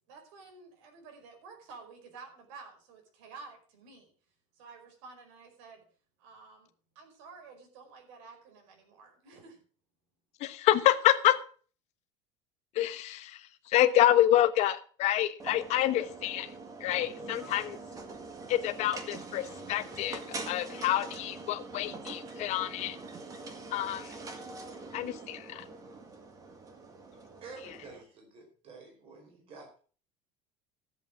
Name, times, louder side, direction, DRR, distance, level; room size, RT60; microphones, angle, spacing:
voice 1, 0.1-4.1 4.5-5.8 6.2-6.7 6.9-9.6, right 4 dB, 80° right, 4.9 m, -51 dB
voice 2, 10.4-11.3 12.7-16.5 16.8-17.8 18.5-20.2 20.5-23.0 23.7-24.1 24.9-25.6, left 13 dB, 45° left, 1.2 m, -27 dB
sound 1, 15.4-28.0, right 3 dB, 20° right, 1.8 m, -44 dB
voice 3, 27.4-29.8, right 4 dB, 40° right, 4.8 m, -49 dB
14.0 x 7.8 x 6.0 m
cardioid pair, 170°, 16 cm